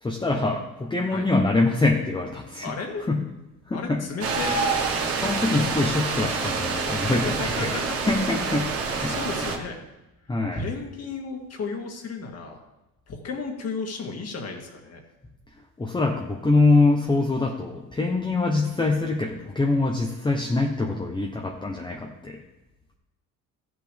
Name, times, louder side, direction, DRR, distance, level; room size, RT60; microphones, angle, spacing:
voice 1, 0.0-2.7 3.1-3.2 3.7-4.0 5.2-7.7 8.0-9.1 10.3-10.6 15.8-22.4, left 3 dB, 15° left, 0 dB, 0.9 m, -24 dB
voice 2, 2.6-3.0 3.7-4.7 7.2-7.8 9.1-9.8 10.5-12.6 13.1-15.0, left 4 dB, 45° left, 2 dB, 2.0 m, -33 dB
sound 1, 4.2-9.6, right 4 dB, 45° right, 1.5 m, -27 dB
15.0 x 7.9 x 3.5 m, 1.0 s
cardioid pair, 140°, 34 cm